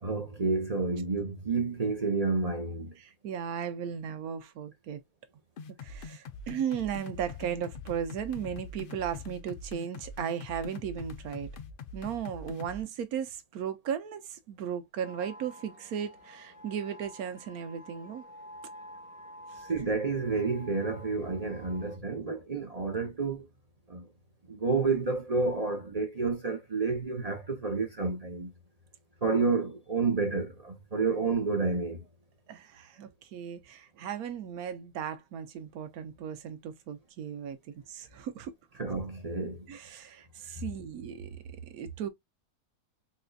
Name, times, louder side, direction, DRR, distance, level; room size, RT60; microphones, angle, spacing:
voice 1, 0.0-2.9 19.7-23.4 23.9-24.1 24.5-28.5 29.2-32.0 38.8-39.7, right 4 dB, 40° right, 0.6 m, -30 dB
voice 2, 3.0-5.0 5.8-11.5 11.9-18.2 32.5-37.6 37.9-38.5 39.7-42.1, right 8 dB, 70° right, 1.1 m, -36 dB
sound 1, 5.6-12.8, left 4 dB, 90° left, 0.4 m, -43 dB
sound 2, 15.0-22.0, equal, 65° left, 1.7 m, -50 dB
4.1 x 2.6 x 2.2 m
omnidirectional pair, 1.7 m